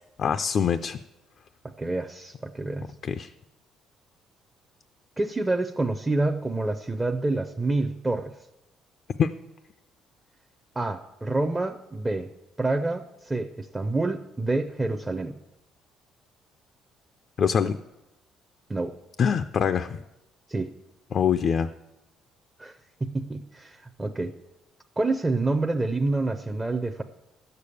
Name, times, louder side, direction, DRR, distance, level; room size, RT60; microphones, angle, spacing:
voice 1, 0.2-1.0 3.0-3.3 9.2-9.3 17.4-17.8 19.2-20.0 21.1-21.7, left 7 dB, 40° left, 9 dB, 0.4 m, -24 dB
voice 2, 1.8-2.9 5.2-8.3 10.8-12.3 12.6-15.4 18.7-18.9 20.5-20.7 22.6-22.8 23.0-24.4 25.0-27.0, right 2 dB, 10° right, 5 dB, 0.5 m, -27 dB
12.5 x 6.8 x 8.4 m, 0.97 s
cardioid pair, 155°, 0 cm